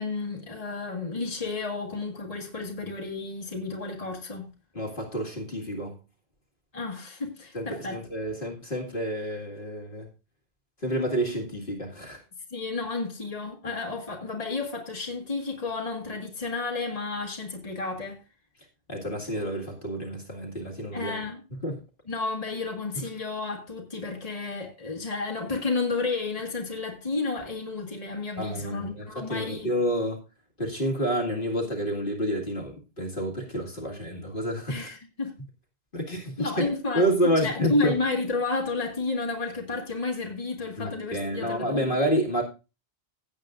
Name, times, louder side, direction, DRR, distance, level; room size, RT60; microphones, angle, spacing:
voice 1, 0.0-4.5 6.7-8.0 12.5-18.2 20.9-21.4 22.1-29.7 34.7-35.3 36.4-41.9, left 3 dB, 35° left, 2.0 m, -31 dB
voice 2, 4.7-6.0 7.5-10.1 10.8-12.2 18.9-21.2 21.6-21.8 23.0-23.1 28.4-30.2 30.6-34.9 35.9-38.0 40.8-42.4, equal, 55° left, 2.2 m, -29 dB
16.5 x 8.1 x 2.5 m
omnidirectional pair, 1.1 m